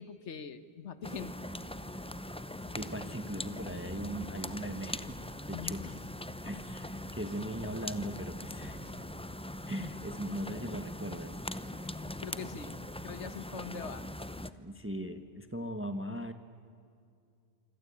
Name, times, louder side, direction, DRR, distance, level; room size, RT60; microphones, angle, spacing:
voice 1, 0.0-1.3 5.5-5.9 12.2-12.8 13.0-14.0, left 6 dB, 85° left, 13 dB, 1.5 m, -43 dB
sound 1, 1.0-14.5, left 1 dB, 5° left, 0.7 m, -41 dB
sound 2, 2.1-14.0, left 1 dB, 40° left, 3.6 m, -57 dB
sound 3, 2.3-9.7, equal, 20° left, 3.7 m, -58 dB
voice 2, 2.7-5.2 5.5-6.0 6.4-8.9 9.7-11.3 14.6-16.3, right 1 dB, 10° right, 9 dB, 1.2 m, -39 dB
27.5 x 25.5 x 8.6 m, 2.4 s
omnidirectional pair, 1.2 m